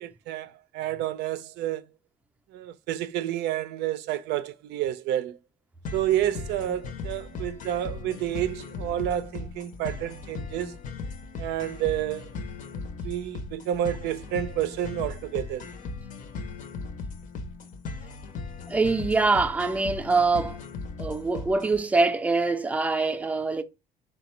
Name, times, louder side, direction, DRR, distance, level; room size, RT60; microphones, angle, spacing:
voice 1, 0.0-1.9 2.5-5.4 5.9-10.8 11.4-12.3 13.0-15.7, right 12 dB, 85° right, 0.4 m, -29 dB
sound 1, 5.8-21.8, left 4 dB, 50° left, 0.6 m, -38 dB
voice 2, 18.7-20.6 21.0-23.6, right 3 dB, 10° right, 0.4 m, -24 dB
3.9 x 2.2 x 4.2 m
cardioid pair, 110°, 17 cm